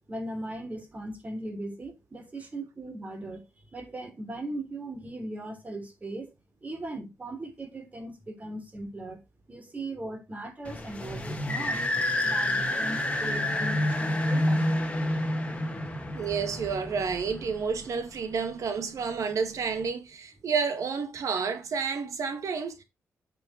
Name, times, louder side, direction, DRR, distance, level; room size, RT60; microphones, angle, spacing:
voice 1, 0.1-3.4 3.7-6.3 6.6-9.2 9.5-11.8 12.2-14.7, right 2 dB, 25° right, 3.5 m, -38 dB
sound 1, 10.6-18.0, left 1 dB, 20° left, 2.0 m, -29 dB
voice 2, 16.1-22.8, right 5 dB, 70° right, 2.0 m, -30 dB
8.8 x 5.4 x 5.1 m
wide cardioid pair, 110°, 6 cm